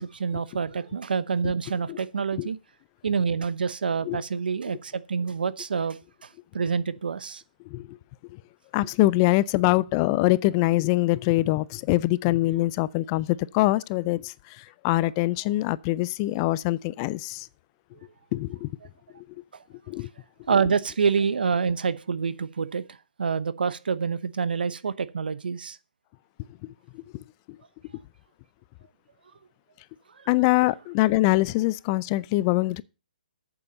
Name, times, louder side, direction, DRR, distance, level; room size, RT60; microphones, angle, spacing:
voice 1, 0.0-2.6 3.0-6.3 6.5-7.4 20.5-25.8 30.2-30.3, right 5 dB, 75° right, 0.9 m, -27 dB
voice 2, 7.7-8.0 8.7-17.5 18.3-18.7 19.2-19.3 19.9-20.1 26.9-27.0 30.3-32.8, left 18 dB, 30° left, 0.4 m, -24 dB
8.6 x 7.0 x 6.7 m
hypercardioid pair, 145°, 5 cm